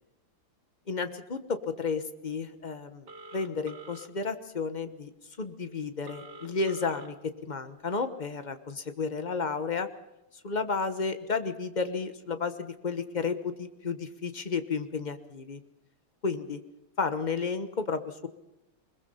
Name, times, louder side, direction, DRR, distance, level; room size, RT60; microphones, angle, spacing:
voice 1, 0.9-5.1 5.4-9.9 10.4-15.6 16.2-16.6 17.0-18.3, left 4 dB, 30° left, 10 dB, 0.8 m, -32 dB
Telephone, 3.1-4.1 6.1-7.1, right 2 dB, 50° right, 2.3 m, -46 dB
21.5 x 21.5 x 5.6 m, 0.91 s
omnidirectional pair, 2.3 m